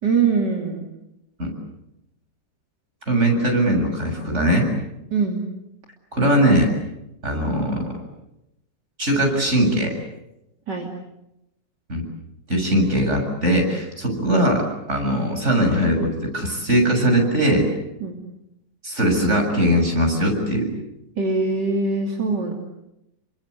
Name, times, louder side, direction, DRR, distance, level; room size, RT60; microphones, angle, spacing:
voice 1, 0.0-0.9 5.1-5.4 10.7-10.9 18.0-18.2 21.2-22.5, right 4 dB, 70° right, 1 dB, 3.5 m, -22 dB
voice 2, 3.1-4.7 6.1-6.7 7.2-7.8 9.0-9.9 11.9-12.0 12.5-17.6 18.8-20.7, right 1 dB, 40° right, 3 dB, 7.6 m, -20 dB
29.0 x 24.5 x 8.2 m, 0.87 s
omnidirectional pair, 1.9 m